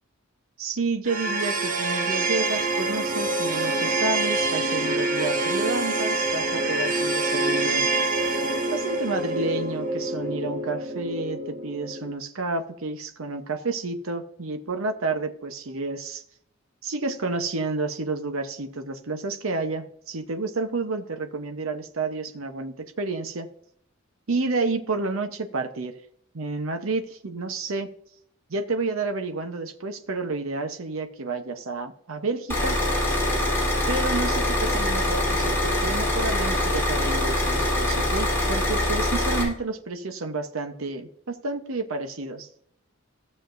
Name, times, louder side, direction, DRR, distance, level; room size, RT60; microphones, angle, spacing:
voice 1, 0.6-7.9 8.7-16.2 16.8-23.5 24.3-25.9 26.3-27.9 28.5-32.8 33.9-42.7, right 3 dB, 80° right, 6 dB, 0.9 m, -30 dB
sound 1, 1.1-12.1, right 2 dB, 40° right, 1.5 m, -26 dB
sound 2, 32.5-39.4, left 1 dB, 10° left, 3.8 m, -24 dB
15.5 x 7.3 x 2.6 m, 0.68 s
head